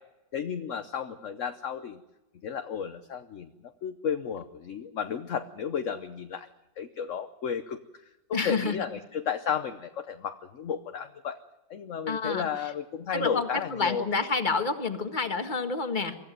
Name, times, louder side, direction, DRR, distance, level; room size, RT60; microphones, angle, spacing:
voice 1, 0.3-2.0 2.4-3.5 3.8-6.5 6.8-7.8 8.3-11.4 11.7-14.0, left 7 dB, 50° left, 8 dB, 1.1 m, -33 dB
voice 2, 8.3-8.8 12.1-12.5 13.1-16.2, left 4 dB, 25° left, 6 dB, 1.8 m, -29 dB
24.0 x 15.0 x 9.2 m, 1.0 s
omnidirectional pair, 1.9 m